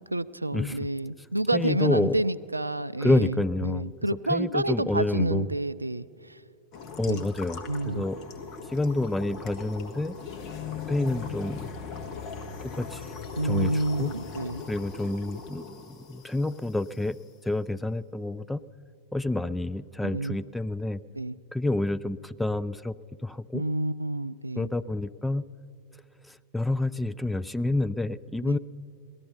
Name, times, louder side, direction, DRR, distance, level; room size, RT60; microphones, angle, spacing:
voice 1, 0.1-6.4 7.1-7.3 7.7-8.1 13.4-14.6 20.1-20.4 21.2-21.4 23.5-24.7 28.5-28.6, right 1 dB, 85° right, 16 dB, 0.3 m, -29 dB
voice 2, 1.5-2.2 3.0-3.9 4.3-5.5 7.0-8.2 8.7-10.1 10.9-11.7 12.6-13.0 13.4-14.1 14.7-17.2 17.4-18.6 19.1-21.0 21.5-22.9 23.2-23.6 24.6-25.4 26.3-28.6, left 2 dB, 5° left, 12 dB, 0.3 m, -28 dB
sound 1, 6.7-17.1, left 5 dB, 35° left, 1.3 m, -40 dB
18.5 x 13.0 x 5.6 m, 2.5 s
figure-of-eight pair, 90°, 0 cm